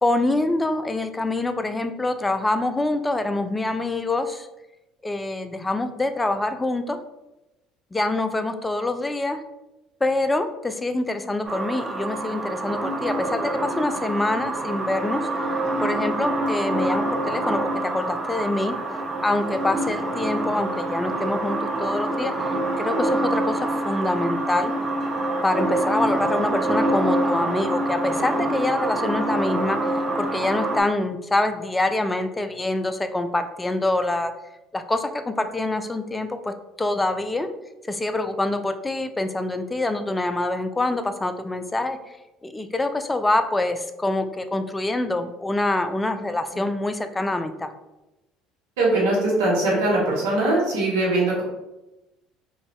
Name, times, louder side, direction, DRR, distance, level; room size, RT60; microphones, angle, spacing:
voice 1, 0.0-4.5 5.0-7.0 7.9-9.4 10.0-15.3 15.8-18.7 19.2-24.7 25.4-34.3 34.7-37.5 37.9-42.0 42.4-47.7, left 2 dB, 15° left, 8 dB, 0.3 m, -25 dB
sound 1, 11.4-30.8, right 1 dB, 25° right, 0.6 m, -26 dB
voice 2, 48.8-51.4, right 2 dB, 80° right, -4 dB, 0.9 m, -21 dB
2.5 x 2.3 x 3.0 m, 0.98 s
hypercardioid pair, 65°, 0 cm